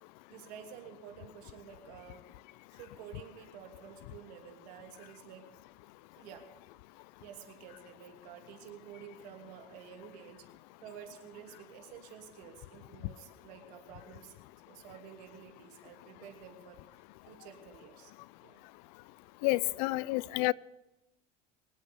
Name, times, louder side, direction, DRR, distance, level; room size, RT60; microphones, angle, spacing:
voice 1, 0.3-2.2 2.7-5.4 6.1-6.4 7.2-10.4 10.8-14.3 14.7-16.8 17.3-18.1 18.4-18.7 19.6-19.7, right 8 dB, 80° right, 2.9 m, -50 dB
voice 2, 19.4-20.5, left 21 dB, 75° left, 0.5 m, -29 dB
25.0 x 8.7 x 5.3 m
supercardioid pair, 125°, 20 cm